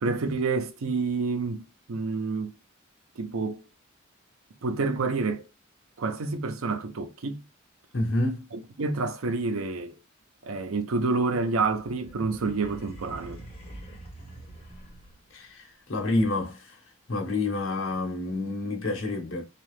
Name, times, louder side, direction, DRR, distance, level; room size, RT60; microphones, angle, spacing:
voice 1, 0.0-2.5 3.2-3.6 4.6-5.5 6.0-7.4 8.5-10.0 10.4-13.4, right 4 dB, 90° right, 0.5 m, -28 dB
voice 2, 7.9-8.4 15.3-16.8 17.1-19.4, left 2 dB, 75° left, 0.9 m, -28 dB
sound 1, 11.3-15.5, right 1 dB, 30° left, 1.1 m, -45 dB
2.7 x 2.3 x 3.2 m
head